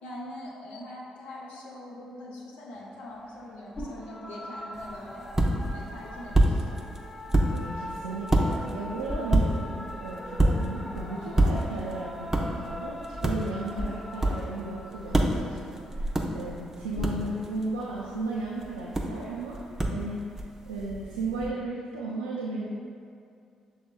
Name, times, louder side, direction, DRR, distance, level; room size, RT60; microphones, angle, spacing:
voice 1, 0.0-5.3 5.7-6.8, left 1 dB, 70° left, -3 dB, 0.7 m, -43 dB
sound 1, 2.7-17.4, left 1 dB, 20° left, 1.0 m, -42 dB
sound 2, 3.1-18.0, left 1 dB, 50° left, 0.9 m, -45 dB
sound 3, 4.7-21.5, right 1 dB, 20° right, 0.6 m, -29 dB
voice 2, 7.5-20.2 20.7-22.7, right 2 dB, 90° right, -5 dB, 0.3 m, -35 dB
6.3 x 3.4 x 2.2 m, 2.3 s
hypercardioid pair, 40°, 2 cm